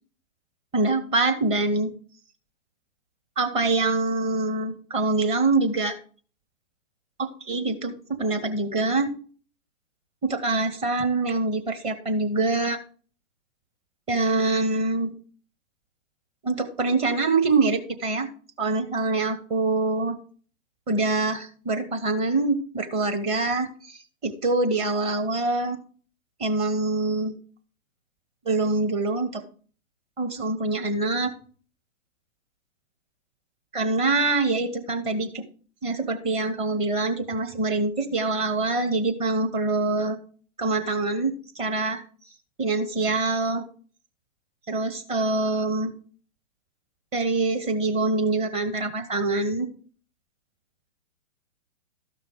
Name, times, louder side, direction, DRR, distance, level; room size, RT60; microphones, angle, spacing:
voice 1, 0.7-1.9 3.4-6.0 7.2-9.1 10.2-12.8 14.1-15.1 16.4-18.3 18.6-20.2 20.9-25.8 26.4-27.3 28.4-29.4 30.2-31.3 33.7-35.4 35.8-40.2 40.6-42.0 42.6-43.7 44.7-45.9 47.1-49.7, right 3 dB, 15° right, 5 dB, 1.0 m, -25 dB
13.0 x 5.7 x 3.7 m, 0.42 s
hypercardioid pair, 130°, 39 cm